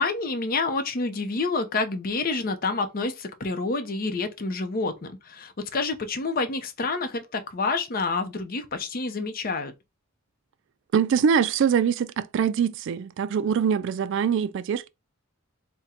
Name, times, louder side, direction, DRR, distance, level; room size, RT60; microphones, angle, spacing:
voice 1, 0.0-9.7, left 3 dB, 45° left, 0.6 m, -28 dB
voice 2, 10.9-14.9, right 7 dB, 60° right, 0.3 m, -23 dB
3.7 x 2.2 x 4.2 m
head